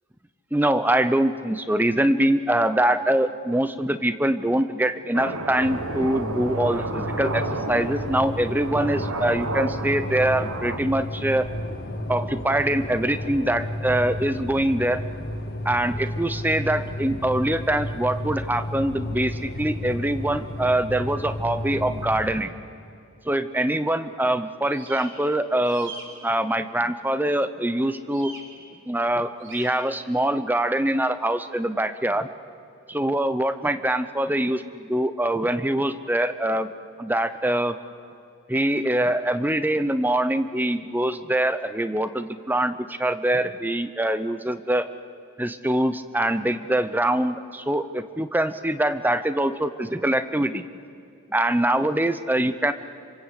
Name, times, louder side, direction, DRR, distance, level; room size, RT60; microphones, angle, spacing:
voice 1, 0.5-11.5 12.1-15.0 15.6-22.5 23.3-25.9 26.2-28.3 28.9-32.3 32.9-36.7 37.0-37.8 38.5-44.9 45.4-50.6 51.3-52.7, right 1 dB, 10° right, 11 dB, 0.7 m, -24 dB
sound 1, 5.1-10.8, right 3 dB, 80° right, 1.5 m, -32 dB
sound 2, 5.6-22.3, left 1 dB, 45° left, 2.1 m, -32 dB
sound 3, 24.7-25.1 25.6-26.0 28.1-28.4 29.4-29.7, right 3 dB, 55° right, 4.3 m, -41 dB
27.0 x 26.0 x 8.3 m, 2.4 s
head